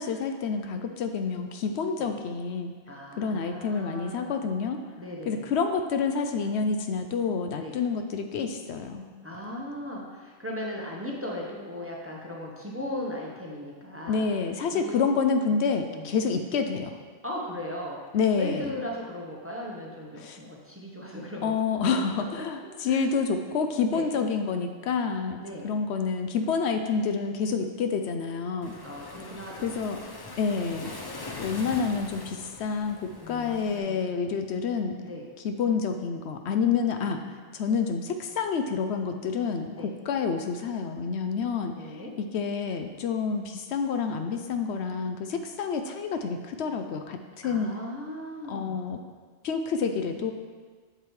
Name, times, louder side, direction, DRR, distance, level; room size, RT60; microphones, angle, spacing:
voice 1, 0.0-2.7 3.2-4.8 5.3-9.1 14.1-16.9 18.1-18.7 20.2-20.4 21.4-28.7 29.6-30.0 30.4-30.9 31.4-35.0 35.4-37.2 37.5-41.7 42.2-47.7 48.5-49.0 49.4-50.3, left 5 dB, 75° left, 6 dB, 0.8 m, -28 dB
voice 2, 2.9-4.4 5.0-5.5 7.6-7.8 9.2-14.2 14.7-15.1 15.9-16.1 17.2-18.0 18.4-21.9 22.1-22.5 22.8-23.1 23.9-24.1 25.4-25.7 28.8-29.7 33.2-34.1 35.0-35.3 39.8-39.9 41.7-42.1 47.4-48.8, left 1 dB, 15° right, -2 dB, 0.8 m, -37 dB
Waves surf, 28.6-33.8, left 2 dB, 35° left, 0.4 m, -42 dB
7.7 x 6.9 x 3.2 m, 1.5 s
omnidirectional pair, 1.2 m